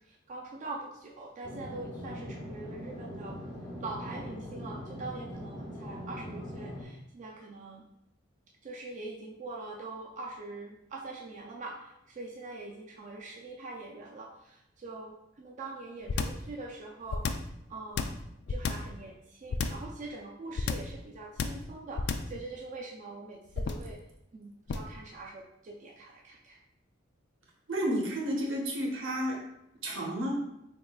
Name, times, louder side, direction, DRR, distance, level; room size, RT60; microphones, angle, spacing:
voice 1, 0.0-3.4 3.8-7.8 8.6-17.2 17.7-18.1 18.5-24.0 24.3-26.6, right 3 dB, 40° right, -1 dB, 0.4 m, -43 dB
sound 1, 1.4-6.8, equal, 25° left, 0.7 m, -41 dB
sound 2, 16.1-16.5 17.1-17.5 18.0-18.9 19.5-19.9 20.6-21.0 21.4-21.7 22.0-22.4 23.5-23.9 24.7-25.0, left 5 dB, 55° left, 0.3 m, -31 dB
voice 2, 27.7-29.4 29.8-30.4, equal, 75° right, -1 dB, 0.9 m, -31 dB
3.9 x 3.6 x 2.3 m, 0.84 s
head